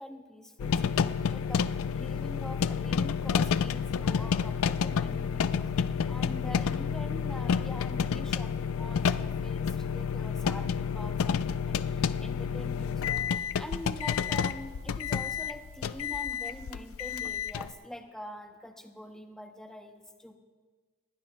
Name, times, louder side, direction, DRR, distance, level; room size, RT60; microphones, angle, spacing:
voice 1, 0.0-13.3 13.6-20.4, equal, ahead, 5 dB, 0.7 m, -45 dB
sound 1, 0.6-17.7, left 7 dB, 70° left, 0.3 m, -30 dB
20.0 x 17.0 x 2.2 m, 1.4 s
head